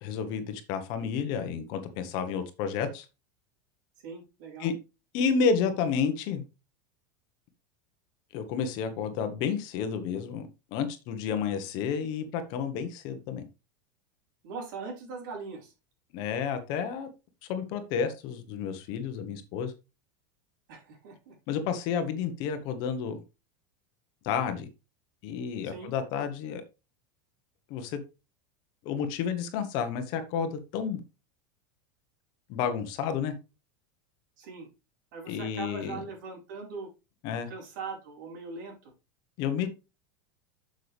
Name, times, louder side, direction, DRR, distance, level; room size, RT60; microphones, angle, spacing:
voice 1, 0.0-3.1 4.6-4.7 5.1-6.4 8.3-13.4 16.1-17.1 17.5-19.7 21.5-23.2 24.2-24.7 25.2-26.6 27.7-28.0 28.8-31.0 32.5-33.3 35.3-36.0 37.2-37.5 39.4-39.7, left 6 dB, 40° left, 1.2 m, -30 dB
voice 2, 4.0-4.7 14.4-15.7 20.7-21.3 25.6-25.9 34.4-34.7 35.1-36.9 37.5-38.9, right 4 dB, 65° right, 5.0 m, -40 dB
8.3 x 6.6 x 3.4 m
supercardioid pair, 180°, 11 cm